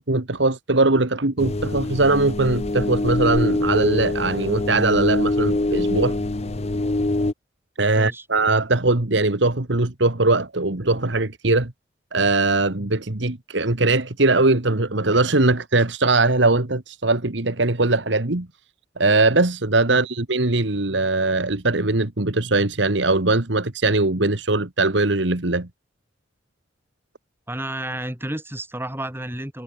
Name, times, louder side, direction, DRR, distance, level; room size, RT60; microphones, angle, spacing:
voice 1, 0.0-6.2 7.8-11.7 12.1-18.5 19.0-25.7, right 2 dB, 65° right, 1.8 m, -20 dB
sound 1, 1.4-7.3, left 2 dB, 35° left, 0.8 m, -24 dB
voice 2, 7.9-8.3 19.9-20.0 27.5-29.6, right 1 dB, 10° right, 7.7 m, -31 dB
head